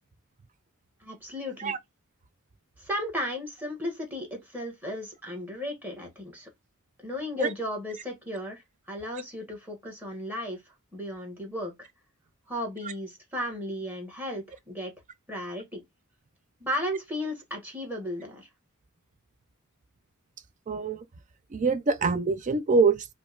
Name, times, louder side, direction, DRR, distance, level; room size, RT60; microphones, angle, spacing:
voice 1, 1.0-1.7 2.8-6.5 7.0-8.6 8.9-11.9 12.5-14.9 15.3-15.8 16.6-18.5, left 1 dB, 10° right, 1.3 m, -35 dB
voice 2, 20.7-21.0 21.5-23.1, right 4 dB, 35° right, 0.4 m, -24 dB
4.9 x 2.1 x 2.4 m
head